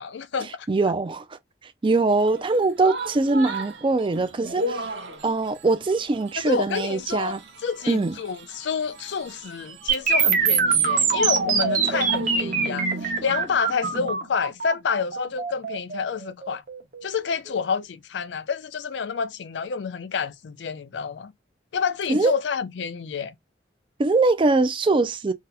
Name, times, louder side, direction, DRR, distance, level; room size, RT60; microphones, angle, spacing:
voice 1, 0.0-0.5 6.4-7.4 7.6-16.6 17.0-21.3 21.7-23.3, left 6 dB, 70° left, 0.4 m, -28 dB
voice 2, 0.7-1.4 1.8-4.8 5.2-7.4 7.9-8.2 22.1-22.3 24.0-25.3, right 3 dB, 30° right, 0.4 m, -22 dB
sound 1, 2.1-14.1, right 2 dB, 80° right, 0.8 m, -36 dB
sound 2, 9.9-17.8, right 6 dB, 45° right, 0.8 m, -24 dB
2.8 x 2.1 x 3.9 m
head